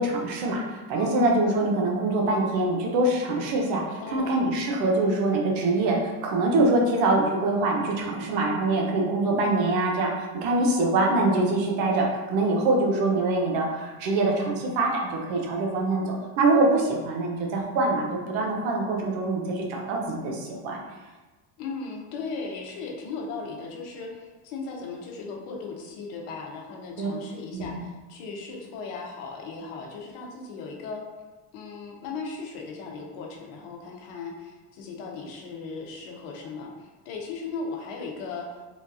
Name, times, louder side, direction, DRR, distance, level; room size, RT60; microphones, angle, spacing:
voice 1, 0.0-20.8 27.0-27.1 27.5-27.7, right 2 dB, 75° right, -1 dB, 0.9 m, -24 dB
voice 2, 0.9-1.3 4.0-4.4 21.6-31.0 31.5-38.5, left 4 dB, 75° left, 0 dB, 0.8 m, -37 dB
3.8 x 2.2 x 2.5 m, 1.2 s
supercardioid pair, 85°, 46 cm